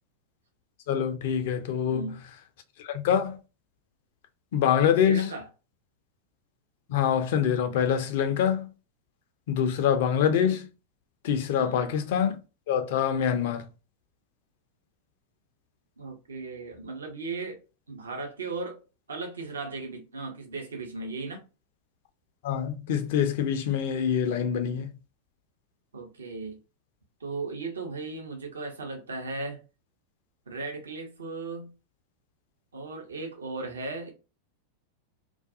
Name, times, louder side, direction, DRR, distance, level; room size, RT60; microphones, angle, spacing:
voice 1, 0.9-2.2 2.8-3.4 4.5-5.3 6.9-8.7 9.5-10.7 11.2-12.4 12.7-13.7 22.4-24.9, left 8 dB, 50° left, 0.4 m, -25 dB
voice 2, 1.8-2.2 5.1-5.4 11.5-11.8 16.0-17.6 17.9-18.8 19.1-21.4 25.9-26.6 27.2-29.6 30.5-31.7 32.7-34.1, right 3 dB, 70° right, 0.6 m, -36 dB
2.4 x 2.2 x 2.5 m
figure-of-eight pair, 90°, 0 cm